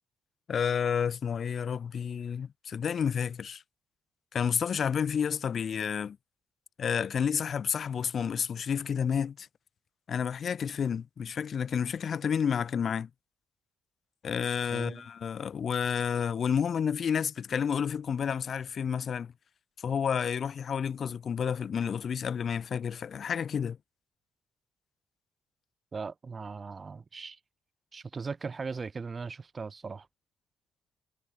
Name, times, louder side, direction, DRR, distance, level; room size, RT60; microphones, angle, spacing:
voice 1, 0.5-3.6 4.3-6.2 6.8-9.5 10.1-13.1 14.2-19.3 19.8-23.8, left 7 dB, 50° left, 1.0 m, -30 dB
voice 2, 14.7-15.1 25.9-27.4 27.9-30.1, right 4 dB, 35° right, 1.1 m, -38 dB
cardioid pair, 90°, 0 cm